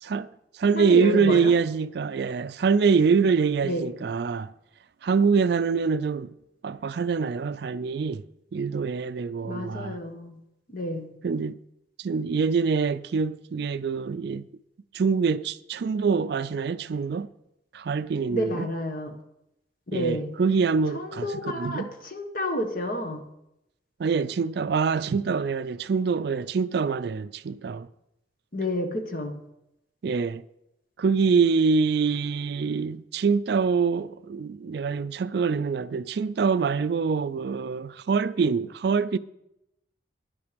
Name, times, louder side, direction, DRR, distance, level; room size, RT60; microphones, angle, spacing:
voice 1, 0.0-4.5 5.0-6.3 6.6-8.2 8.5-10.0 11.2-11.6 12.0-14.5 14.9-17.3 17.7-18.7 19.9-21.9 24.0-27.9 30.0-30.4 31.0-39.2, right 5 dB, 55° right, 0.4 m, -25 dB
voice 2, 0.7-1.5 3.6-3.9 9.4-10.4 10.7-11.1 18.3-19.2 19.9-20.3 20.9-23.2 28.5-29.4, left 1 dB, 45° left, 1.3 m, -30 dB
10.5 x 9.8 x 5.2 m
head